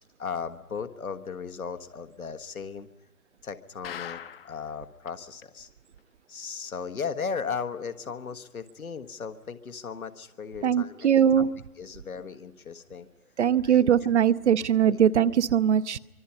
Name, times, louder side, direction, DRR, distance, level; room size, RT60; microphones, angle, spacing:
voice 1, 0.2-2.9 3.4-4.2 4.4-5.7 6.3-11.1 11.8-13.1 13.6-13.9 14.8-15.0, left 6 dB, 70° left, 8 dB, 1.5 m, -36 dB
sound 1, 3.8-4.7 5.1-5.2 5.4-5.5 6.0-6.1, left 9 dB, 40° left, 0.9 m, -40 dB
voice 2, 10.6-11.5 13.4-16.0, right 9 dB, 50° right, 15 dB, 0.8 m, -21 dB
27.0 x 24.5 x 5.6 m, 1.0 s
figure-of-eight pair, 125°, 43 cm